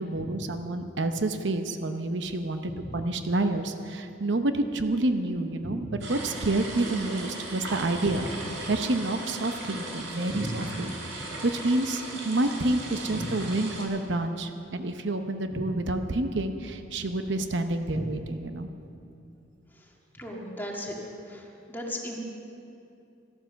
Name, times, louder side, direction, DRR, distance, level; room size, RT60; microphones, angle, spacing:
voice 1, 0.0-2.6 2.9-5.8 6.1-18.7, right 2 dB, 70° right, 7 dB, 0.8 m, -28 dB
voice 2, 2.7-3.0 5.6-5.9 8.1-8.3 10.3-10.7 13.1-13.2 15.5-15.6 17.9-18.1 20.1-21.0 21.3-22.2, equal, 10° left, -1 dB, 1.9 m, -36 dB
sound 1, 6.0-13.9, right 2 dB, 85° right, 3.1 m, -38 dB
13.5 x 12.5 x 6.9 m, 2.7 s
head